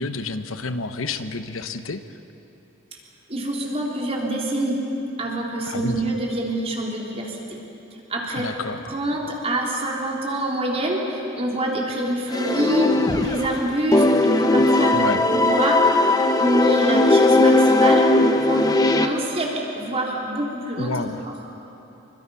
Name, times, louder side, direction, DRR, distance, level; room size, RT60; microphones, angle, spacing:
voice 1, 0.0-2.0 5.6-6.0 8.4-8.9 14.9-15.2 20.8-21.2, left 3 dB, 85° left, 9 dB, 1.0 m, -29 dB
voice 2, 3.3-4.9 5.2-7.4 8.1-8.5 8.9-13.0 13.2-15.1 15.3-16.0 16.4-21.3, right 1 dB, 30° right, -2 dB, 3.6 m, -26 dB
sound 1, 12.3-13.6 13.9-19.1, left 2 dB, 20° left, 1.1 m, -18 dB
27.5 x 24.0 x 5.7 m, 3.0 s
head